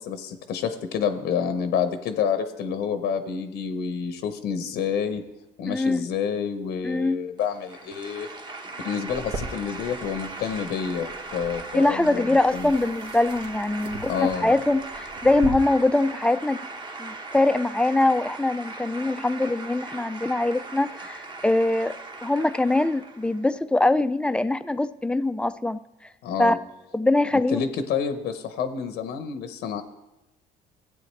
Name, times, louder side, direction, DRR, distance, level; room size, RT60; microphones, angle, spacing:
voice 1, 0.0-5.2 5.6-8.3 8.8-12.7 14.1-14.5 26.2-26.6 27.5-29.8, left 7 dB, 80° left, 9 dB, 0.9 m, -28 dB
voice 2, 5.7-6.1 6.8-7.2 11.7-16.6 17.0-21.9 22.2-25.8 26.4-26.6 26.9-27.6, left 2 dB, 5° left, 13 dB, 0.3 m, -23 dB
sound 1, 7.4-23.4, right 3 dB, 25° right, 1.0 m, -39 dB
sound 2, 9.1-15.5, right 2 dB, 75° right, 1.6 m, -40 dB
15.5 x 8.5 x 3.2 m, 0.97 s
cardioid pair, 110°, 17 cm